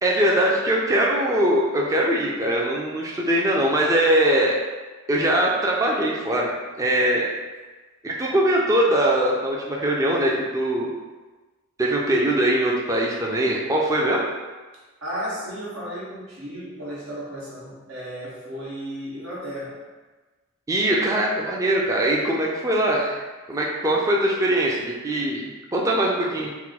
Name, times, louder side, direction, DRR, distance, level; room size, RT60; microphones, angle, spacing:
voice 1, 0.0-4.6 5.1-6.5 6.8-7.3 8.0-10.9 11.8-14.2 20.7-23.2 23.5-26.5, right 1 dB, 15° right, -3 dB, 0.4 m, -21 dB
voice 2, 15.0-19.8, equal, 85° right, -7 dB, 1.4 m, -34 dB
4.3 x 2.1 x 4.0 m, 1.3 s
head